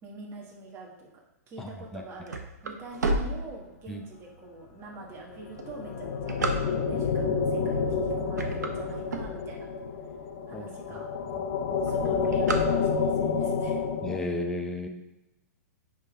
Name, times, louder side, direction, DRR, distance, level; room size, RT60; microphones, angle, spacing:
voice 1, 0.0-1.1 1.5-9.7 10.5-11.1 11.8-13.8, right 3 dB, 25° right, -2 dB, 1.6 m, -44 dB
voice 2, 1.6-2.0 3.9-4.0 10.5-10.7 11.3-11.5 14.0-14.9, left 2 dB, 5° left, 1 dB, 0.6 m, -34 dB
sound 1, 1.8-4.1 4.7-4.8 5.4-7.1 7.8-8.0 8.3-9.8 10.3-10.4 10.6-10.7 11.0-11.4 11.6-13.3, right 2 dB, 90° right, 1.0 m, -31 dB
sound 2, 5.3-14.2, left 5 dB, 50° left, 0.8 m, -29 dB
9.5 x 3.8 x 3.6 m, 0.98 s
hypercardioid pair, 130°, 9 cm